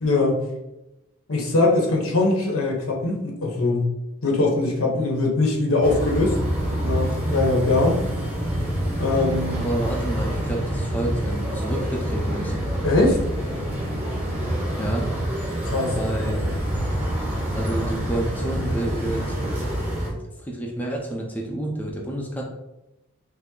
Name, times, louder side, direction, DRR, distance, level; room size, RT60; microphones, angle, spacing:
voice 1, 0.0-0.4 1.3-3.9 4.2-6.4 6.8-8.0 9.0-9.7 12.8-13.2 15.6-15.9, left 2 dB, 85° left, 0 dB, 1.0 m, -21 dB
sound 1, 5.8-20.1, equal, 10° right, 0.9 m, -26 dB
voice 2, 9.6-12.5 14.8-15.1 15.9-16.4 17.5-19.4 20.4-22.4, right 1 dB, 10° left, -1 dB, 0.5 m, -29 dB
5.7 x 2.0 x 3.7 m, 0.94 s
head